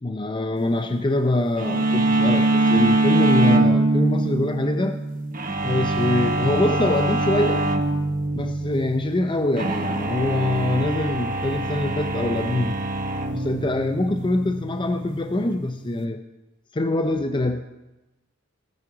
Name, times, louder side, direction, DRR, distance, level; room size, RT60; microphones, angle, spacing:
voice 1, 0.0-5.0 5.6-7.7 8.3-12.8 13.3-16.2 16.7-17.7, left 2 dB, 25° left, 7 dB, 0.5 m, -24 dB
sound 1, 1.6-16.0, right 2 dB, 45° right, 1.0 m, -24 dB
18.5 x 7.5 x 4.9 m, 1.0 s
head